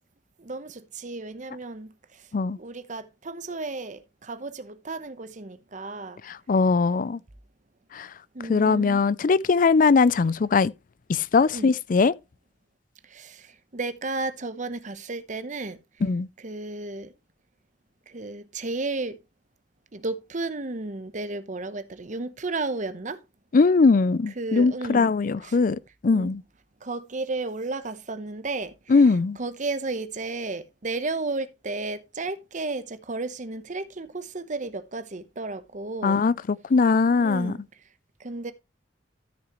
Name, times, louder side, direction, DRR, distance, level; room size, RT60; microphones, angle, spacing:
voice 1, 0.4-1.9 2.6-6.2 8.3-9.0 11.5-11.8 13.1-15.8 16.4-17.1 18.1-19.2 19.9-23.2 24.4-25.1 25.4-25.6 26.1-26.3 26.8-29.0 29.4-36.2 37.2-37.6 38.2-38.5, right 3 dB, 45° right, 1.0 m, -33 dB
voice 2, 6.3-7.2 7.9-8.1 8.5-10.7 11.1-12.1 16.0-16.3 23.5-26.4 28.9-29.4 36.0-36.3 36.7-37.5, left 4 dB, 50° left, 0.4 m, -20 dB
13.5 x 6.3 x 3.1 m
head